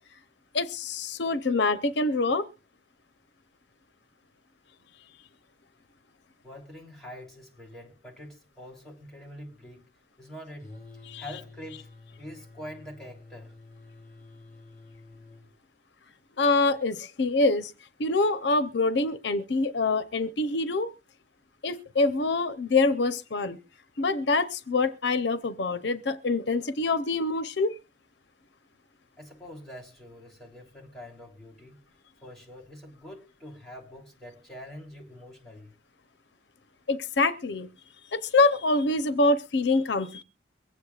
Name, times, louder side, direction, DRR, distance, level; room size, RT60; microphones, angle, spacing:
voice 1, 0.5-2.4 11.1-11.2 16.4-17.7 18.0-20.9 21.6-23.6 24.0-27.7 36.9-37.7 38.1-40.2, left 3 dB, 70° left, 0.7 m, -25 dB
voice 2, 6.4-9.9 10.2-10.7 11.2-11.9 12.2-13.5 29.2-31.8 32.2-35.7, left 1 dB, ahead, 3.0 m, -45 dB
sound 1, 10.6-15.5, left 2 dB, 40° left, 4.1 m, -49 dB
23.5 x 8.3 x 2.4 m
head